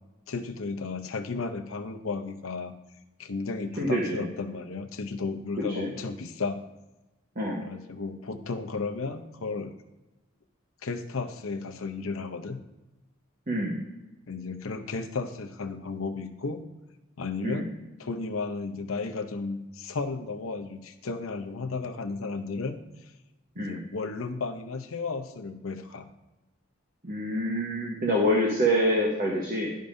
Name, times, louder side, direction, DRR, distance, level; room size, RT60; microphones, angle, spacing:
voice 1, 0.3-2.7 3.2-6.6 7.6-9.7 10.8-12.6 14.3-16.6 17.2-17.7 18.0-23.1 23.6-26.1, left 4 dB, 85° left, 6 dB, 0.7 m, -34 dB
voice 2, 3.8-4.2 5.7-5.9 7.4-7.6 13.5-13.8 17.4-17.6 23.6-23.8 27.0-29.8, equal, 40° right, -3 dB, 1.1 m, -26 dB
11.0 x 5.2 x 2.6 m, 1.0 s
head